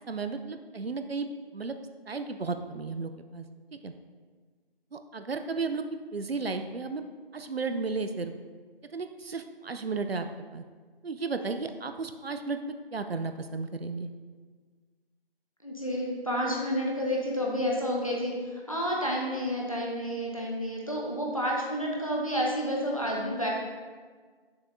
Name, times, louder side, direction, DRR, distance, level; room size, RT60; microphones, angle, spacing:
voice 1, 0.1-1.3 1.5-1.7 2.1-3.4 3.7-3.9 4.9-5.8 6.1-7.0 7.3-8.3 8.9-10.3 10.5-10.6 11.0-14.1, right 4 dB, 80° right, 8 dB, 0.6 m, -34 dB
voice 2, 15.6-23.5, equal, 35° left, -3 dB, 0.9 m, -30 dB
6.9 x 6.8 x 2.6 m, 1.5 s
figure-of-eight pair, 175°, 30 cm